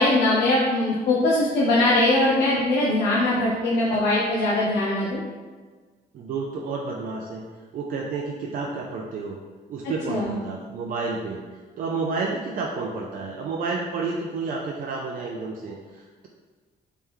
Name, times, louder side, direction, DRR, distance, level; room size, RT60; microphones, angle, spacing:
voice 1, 0.0-5.2 10.1-10.3, left 2 dB, 85° left, -4 dB, 0.6 m, -21 dB
voice 2, 6.1-7.4 7.7-9.4 9.7-11.4 11.8-16.3, right 4 dB, 55° right, -1 dB, 0.4 m, -30 dB
3.4 x 3.0 x 3.6 m, 1.4 s
cardioid pair, 135°, 17 cm